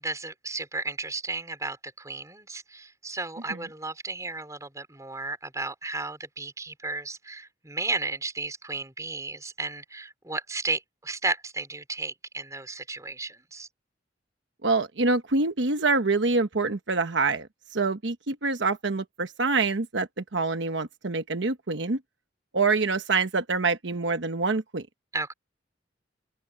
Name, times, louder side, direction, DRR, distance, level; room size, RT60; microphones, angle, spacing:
voice 1, 0.0-13.7 25.1-25.3, right 3 dB, 20° right, 4.9 m, -34 dB
voice 2, 14.6-17.5 17.7-22.0 22.5-24.9, right 3 dB, 75° right, 1.1 m, -26 dB
head